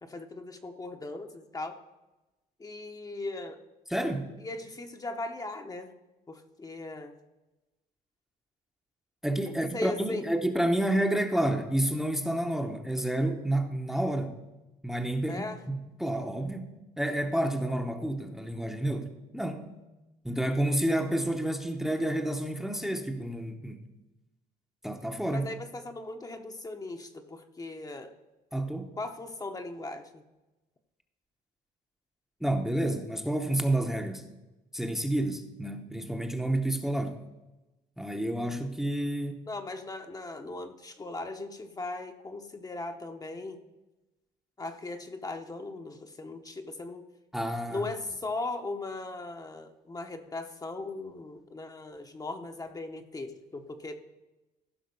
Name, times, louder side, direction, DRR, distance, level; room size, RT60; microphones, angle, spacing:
voice 1, 0.0-1.8 2.6-3.6 4.4-5.9 6.3-7.1 9.5-10.2 15.3-15.6 25.3-28.1 29.0-30.2 39.5-43.6 44.6-47.0 47.7-53.9, left 2 dB, 20° left, 5 dB, 0.9 m, -38 dB
voice 2, 3.9-4.3 9.2-14.4 14.8-16.7 17.0-19.7 20.2-23.8 24.8-25.5 28.5-28.9 32.4-34.2 34.7-37.2 38.0-39.4 47.3-47.8, right 1 dB, ahead, 4 dB, 0.9 m, -29 dB
15.0 x 5.8 x 5.4 m, 1.0 s
cardioid pair, 110°, 17 cm